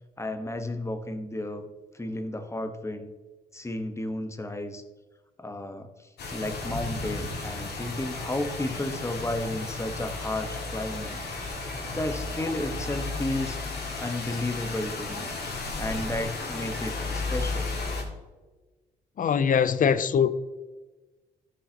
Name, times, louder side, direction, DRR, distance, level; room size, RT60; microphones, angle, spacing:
voice 1, 0.2-1.7 1.9-3.1 3.5-4.8 5.4-5.9 6.3-11.2 11.6-13.6 14.0-15.3 15.8-17.7, left 1 dB, 15° left, 1.3 m, -33 dB
sound 1, 6.2-18.0, left 3 dB, 70° left, 2.0 m, -34 dB
voice 2, 19.2-20.3, left 7 dB, 50° left, 0.6 m, -22 dB
13.5 x 5.6 x 2.9 m
supercardioid pair, 65°, 18 cm